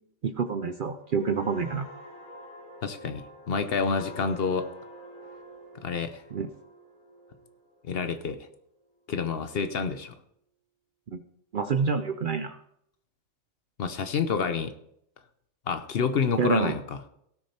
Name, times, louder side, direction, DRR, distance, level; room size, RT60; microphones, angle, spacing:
voice 1, 0.2-1.9 6.3-6.5 11.1-11.2 11.5-12.6 16.4-16.8, right 5 dB, 55° right, 10 dB, 0.6 m, -27 dB
sound 1, 1.0-8.5 8.9-9.2, equal, 90° left, 4.3 m, -47 dB
voice 2, 2.8-4.7 5.8-6.2 7.8-8.4 9.1-10.1 13.8-14.7 15.7-17.0, left 5 dB, 55° left, 10 dB, 0.8 m, -28 dB
17.5 x 6.4 x 4.3 m, 0.75 s
omnidirectional pair, 1.3 m